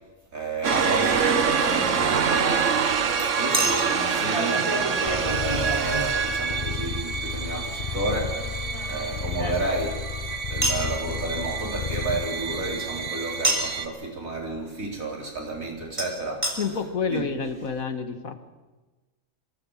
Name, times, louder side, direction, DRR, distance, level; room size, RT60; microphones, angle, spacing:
voice 1, 0.3-2.6 3.4-10.1 10.5-16.6 17.1-17.2, right 2 dB, 80° right, -1 dB, 4.6 m, -31 dB
sound 1, 0.6-13.9, right 6 dB, 65° right, 1.5 m, -27 dB
Chink clink, 0.7-0.9 3.5-6.7 8.3-10.0 10.6-10.9 13.4-13.8 16.0-16.1 16.4-16.5 17.2-17.3 17.5-17.6, right 1 dB, 25° right, 3.3 m, -29 dB
Purr, 5.0-13.1, left 6 dB, 40° left, 0.6 m, -33 dB
voice 2, 16.6-18.4, left 5 dB, 85° left, 8 dB, 2.0 m, -29 dB
24.0 x 15.5 x 7.4 m, 1.2 s
omnidirectional pair, 1.4 m